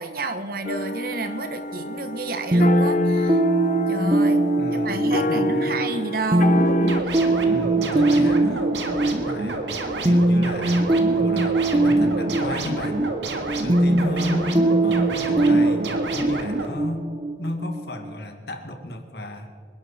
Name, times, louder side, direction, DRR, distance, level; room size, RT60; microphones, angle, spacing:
voice 1, 0.0-3.4 3.9-4.4 4.7-6.7 7.0-7.3, right 3 dB, 50° right, 9 dB, 1.2 m, -30 dB
sound 1, 0.6-7.0, left 2 dB, 45° left, 0.7 m, -27 dB
sound 2, 2.5-18.1, right 2 dB, 30° right, 0.7 m, -22 dB
voice 2, 4.6-5.8 7.5-8.8 9.0-9.7 10.0-13.0 13.6-14.5 14.8-17.1 17.4-19.5, left 1 dB, 60° left, 5 dB, 1.9 m, -34 dB
sound 3, 6.5-16.7, right 2 dB, 80° right, 1.8 m, -29 dB
26.5 x 11.5 x 4.3 m, 2.2 s
head